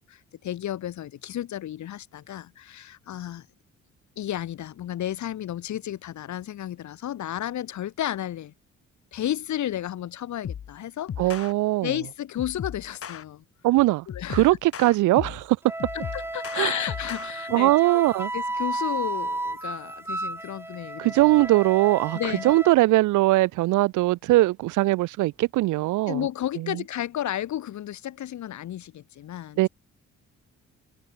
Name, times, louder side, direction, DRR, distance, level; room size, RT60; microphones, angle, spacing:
voice 1, 0.0-3.5 4.2-8.5 9.1-11.1 11.8-13.4 14.1-14.5 16.1-18.0 18.3-21.1 22.1-22.6 26.1-29.6, left 12 dB, 70° left, 2.3 m, -32 dB
sound 1, 10.4-10.7 11.1-11.5 12.4-13.2 14.1-15.5 15.8-17.3, left 8 dB, 50° left, 1.6 m, -36 dB
voice 2, 11.2-11.9 13.6-15.6 16.6-16.7 17.5-18.3 21.0-22.2 22.4-26.3 26.6-26.8 29.6-29.7, right 18 dB, 80° right, 0.5 m, -21 dB
Wind instrument woodwind instrument, 15.6-22.7, right 2 dB, 10° right, 0.8 m, -33 dB
cardioid pair, 90°, 30 cm